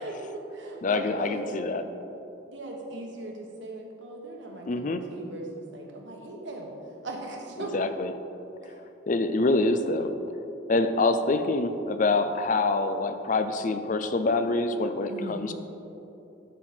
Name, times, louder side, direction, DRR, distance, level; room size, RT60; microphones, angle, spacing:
voice 1, 0.0-1.6 2.5-7.9 8.6-8.8 15.1-15.4, right 2 dB, 70° right, 0 dB, 1.4 m, -39 dB
voice 2, 0.8-1.8 4.7-5.0 7.7-8.1 9.1-10.1 10.7-15.6, left 3 dB, 40° left, 9 dB, 0.4 m, -25 dB
12.0 x 5.9 x 4.4 m, 2.9 s
head